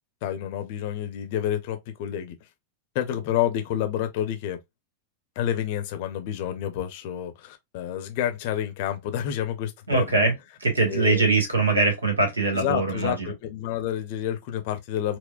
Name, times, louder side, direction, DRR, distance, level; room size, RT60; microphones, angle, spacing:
voice 1, 0.2-2.4 2.9-4.6 5.4-10.3 10.9-11.2 12.5-15.2, left 10 dB, 50° left, 0.6 m, -29 dB
voice 2, 9.9-10.3 10.6-13.3, right 3 dB, 75° right, 1.2 m, -22 dB
4.4 x 2.0 x 2.3 m
figure-of-eight pair, 90°, 0 cm